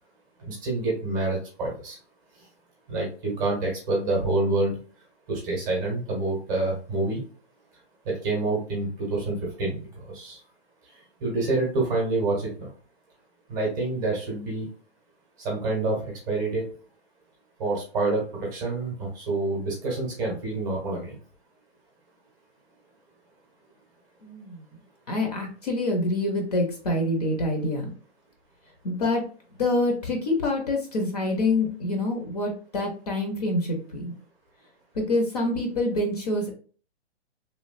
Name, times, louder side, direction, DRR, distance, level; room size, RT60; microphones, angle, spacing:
voice 1, 0.4-2.0 2.9-4.8 5.3-7.2 8.0-9.9 10.1-10.4 11.2-12.7 13.5-14.7 15.4-16.7 17.6-18.2 18.5-21.2, right 2 dB, 15° right, -3 dB, 0.7 m, -27 dB
voice 2, 24.2-24.6 25.1-27.9 28.8-29.2 29.6-34.1 35.0-36.5, left 2 dB, 35° left, 2 dB, 0.6 m, -26 dB
3.1 x 2.2 x 2.5 m, 0.40 s
hypercardioid pair, 165°, 34 cm